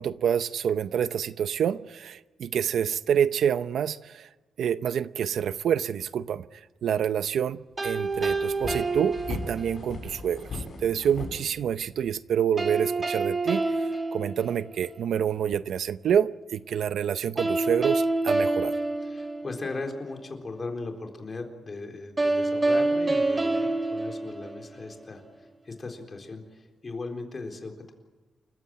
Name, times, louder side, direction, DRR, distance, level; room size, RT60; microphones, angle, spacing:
voice 1, 0.0-4.3 4.6-6.5 6.8-18.7, right 8 dB, 80° right, 0.7 m, -27 dB
sound 1, 7.5-7.6 7.9-12.1, left 4 dB, 50° left, 7.9 m, -38 dB
sound 2, 7.8-9.9 12.6-15.0 17.4-19.9 22.2-25.0, right 2 dB, 20° right, 1.9 m, -27 dB
voice 2, 19.0-27.9, left 3 dB, 30° left, 3.9 m, -38 dB
28.5 x 15.0 x 9.2 m
wide cardioid pair, 145°, 0 cm